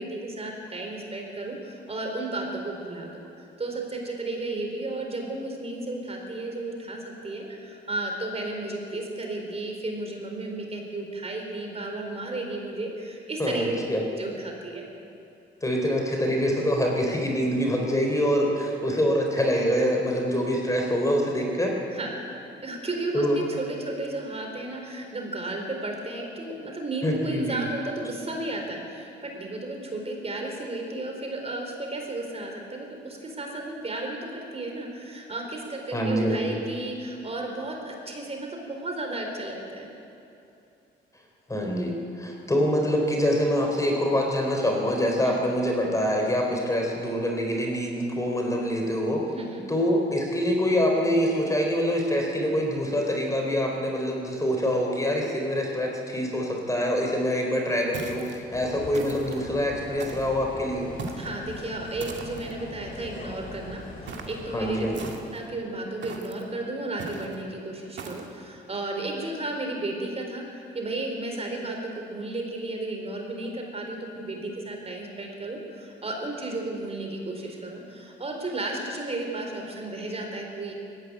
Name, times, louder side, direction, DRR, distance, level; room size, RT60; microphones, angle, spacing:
voice 1, 0.0-3.1 3.4-13.8 14.1-14.8 21.9-22.1 22.6-39.9 45.2-45.4 49.3-49.7 61.1-64.8 65.3-70.4 70.7-80.7, right 2 dB, 30° right, 2 dB, 4.2 m, -33 dB
voice 2, 13.4-14.0 15.6-21.7 23.1-23.4 27.0-27.6 35.9-36.6 41.5-49.2 49.7-60.9 64.5-65.1, equal, 15° left, 0 dB, 3.9 m, -25 dB
sound 1, 57.9-58.4 58.9-59.4 60.0-60.4 61.0-61.4 62.0-62.5 64.1-64.4 64.9-65.5 66.0-66.4 67.0-67.4 68.0-68.3, right 4 dB, 65° right, 2.3 m, -39 dB
sound 2, 58.5-65.2, left 2 dB, 45° left, 3.3 m, -42 dB
19.0 x 15.0 x 9.4 m, 2.7 s
cardioid pair, 90°, 20 cm